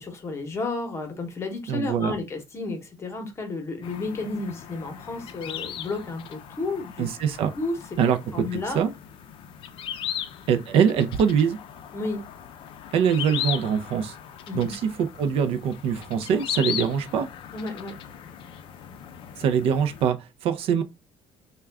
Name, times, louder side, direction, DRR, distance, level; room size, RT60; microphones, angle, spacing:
voice 1, 0.0-7.1 7.6-7.8 8.3-8.8 11.9-12.2 14.5-14.7 17.5-17.9, left 3 dB, 25° left, 0.9 m, -32 dB
voice 2, 1.7-2.1 7.0-7.5 8.0-8.5 8.7-8.9 10.5-11.6 12.9-14.1 14.5-17.3 19.4-20.8, right 7 dB, 60° right, 0.5 m, -23 dB
sound 1, 3.8-20.1, left 10 dB, 50° left, 0.4 m, -38 dB
3.5 x 2.2 x 3.4 m
cardioid pair, 165°, 11 cm